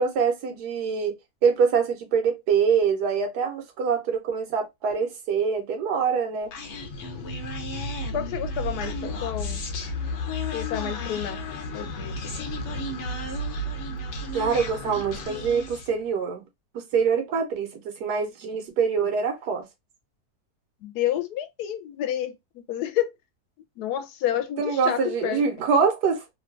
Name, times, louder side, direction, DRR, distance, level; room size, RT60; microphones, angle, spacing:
voice 1, 0.0-6.5 14.3-16.5 16.7-19.7 24.6-26.2, right 6 dB, 85° right, 1.4 m, -24 dB
Human voice, 6.5-16.0, left 1 dB, 60° left, 0.8 m, -32 dB
voice 2, 8.1-9.6 10.5-11.4 11.7-12.2 20.8-23.1 23.8-25.5, left 11 dB, 80° left, 1.1 m, -29 dB
3.1 x 2.3 x 2.4 m
omnidirectional pair, 1.7 m